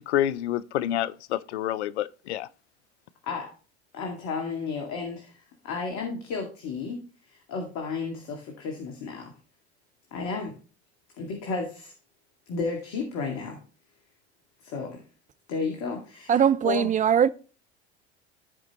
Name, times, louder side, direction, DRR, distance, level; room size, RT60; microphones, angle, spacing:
voice 1, 0.1-2.5, left 12 dB, 80° left, 0.5 m, -28 dB
voice 2, 3.9-9.3 10.1-10.5 11.2-11.9 12.5-13.6 14.6-15.0 15.5-16.9, left 4 dB, 55° left, 2.2 m, -33 dB
voice 3, 16.3-17.3, right 8 dB, 25° right, 0.5 m, -21 dB
14.5 x 5.1 x 3.0 m
hypercardioid pair, 80°, 33 cm